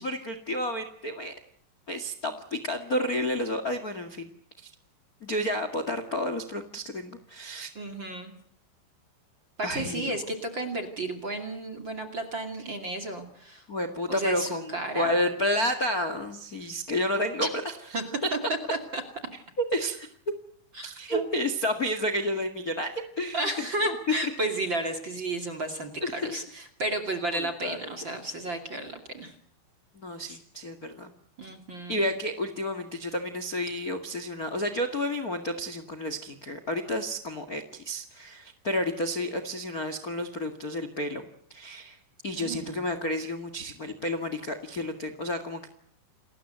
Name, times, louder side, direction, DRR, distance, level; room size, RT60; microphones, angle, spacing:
voice 1, 0.0-1.3 1.9-4.3 4.6-4.7 5.2-7.7 9.6-10.1 13.7-17.5 19.6-20.1 20.8-23.6 26.0-26.3 27.3-27.8 29.9-31.1 31.9-41.2 41.5-42.0 42.2-45.7, left 1 dB, 45° left, 10 dB, 1.2 m, -31 dB
voice 2, 7.7-8.3 9.6-13.6 14.1-15.2 17.4-17.5 17.9-18.0 18.3-18.6 18.9-19.0 20.7-21.2 23.3-29.3 30.3-30.4 31.4-32.0 42.3-42.8, right 2 dB, 35° right, 5 dB, 2.5 m, -32 dB
29.0 x 20.5 x 8.0 m, 0.66 s
omnidirectional pair, 5.0 m